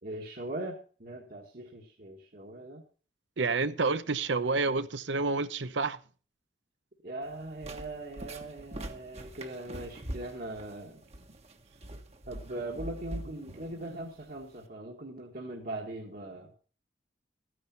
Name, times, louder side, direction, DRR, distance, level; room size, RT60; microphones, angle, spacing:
voice 1, 0.0-2.8 7.0-11.0 12.3-16.5, right 1 dB, 55° right, 1.8 m, -40 dB
voice 2, 3.4-6.0, right 3 dB, 85° right, 0.8 m, -29 dB
sound 1, 7.2-14.7, right 1 dB, 35° right, 1.3 m, -44 dB
14.0 x 10.0 x 4.5 m
head